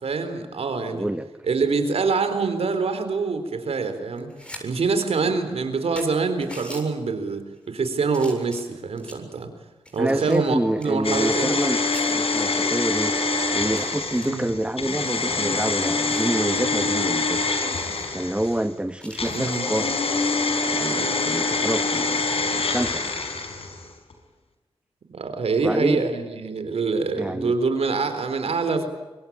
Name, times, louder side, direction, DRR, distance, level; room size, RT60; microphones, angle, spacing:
voice 1, 0.0-1.1 1.5-4.3 4.6-9.5 9.9-11.5 14.2-14.5 19.3-19.6 25.1-28.9, right 4 dB, 80° right, 9 dB, 4.0 m, -25 dB
voice 2, 0.9-1.3 10.0-13.2 13.5-17.5 18.1-20.0 20.7-22.2 22.5-23.0 25.6-26.0 27.2-27.5, right 1 dB, 10° right, 9 dB, 1.3 m, -27 dB
sound 1, 4.1-4.6 5.0-5.1 5.6-5.7 6.0-6.9 7.5-7.8 8.1-9.3 9.9-11.7 11.9-12.1 12.7-12.8 13.2-13.3 13.8-14.3 15.1-16.4 16.8-16.9 17.2-17.3 17.7-18.1 19.0-19.6 21.3-21.5, equal, 10° left, 7.5 m, -43 dB
sound 2, 11.0-18.6 19.1-23.9 24.1-24.2, left 3 dB, 75° left, 5.2 m, -25 dB
25.0 x 23.0 x 8.8 m, 1.2 s
cardioid pair, 55°, 10 cm